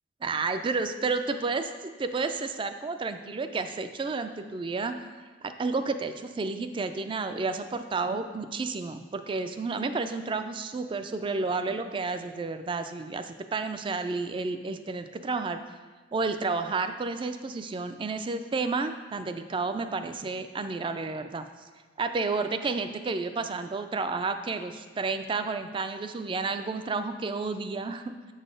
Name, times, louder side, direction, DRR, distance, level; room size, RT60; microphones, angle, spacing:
voice 1, 0.2-5.1 5.4-15.8 16.1-21.5 22.0-28.3, right 4 dB, 25° right, 9 dB, 0.3 m, -31 dB
7.3 x 4.0 x 5.1 m, 1.4 s
head